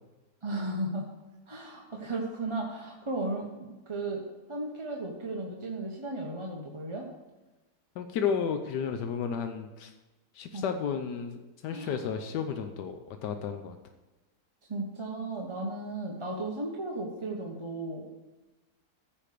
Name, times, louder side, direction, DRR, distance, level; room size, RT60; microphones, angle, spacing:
voice 1, 0.4-1.1 1.5-7.1 10.5-10.7 11.7-12.0 14.7-18.1, right 2 dB, 20° right, -1 dB, 0.9 m, -35 dB
voice 2, 8.0-9.9 10.3-13.8, left 7 dB, 85° left, 7 dB, 1.4 m, -32 dB
14.0 x 5.2 x 6.6 m, 1.1 s
omnidirectional pair, 1.8 m